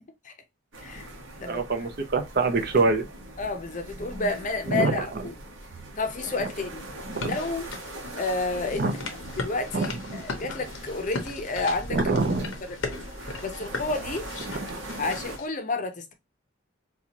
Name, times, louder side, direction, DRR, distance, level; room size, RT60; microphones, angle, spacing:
sound 1, 0.7-15.4, right 1 dB, 75° right, 1.0 m, -40 dB
voice 1, 1.5-3.1 4.7-5.3 6.4-6.5 7.1-7.4 8.7-8.9 9.7-10.3 11.9-12.5, right 3 dB, 50° right, 0.6 m, -25 dB
voice 2, 3.4-5.3 6.0-6.9 7.2-7.7 8.2-8.9 9.4-12.0 12.9-13.0 13.2-14.3 15.0-16.1, left 3 dB, 40° left, 0.6 m, -30 dB
sound 2, 7.1-15.5, left 3 dB, 80° left, 0.8 m, -38 dB
4.2 x 2.3 x 2.8 m
head